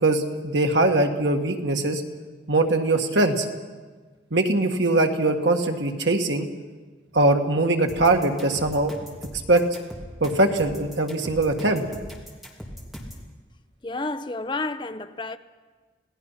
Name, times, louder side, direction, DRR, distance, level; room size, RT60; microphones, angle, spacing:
voice 1, 0.0-2.0 2.5-3.5 4.3-6.5 7.1-8.9 9.5-9.6 10.2-11.8, right 2 dB, 85° right, 1.9 m, -21 dB
sound 1, 7.9-13.3, equal, ahead, 2.8 m, -39 dB
voice 2, 13.8-15.4, left 2 dB, 25° left, 0.7 m, -30 dB
27.0 x 18.0 x 5.8 m
head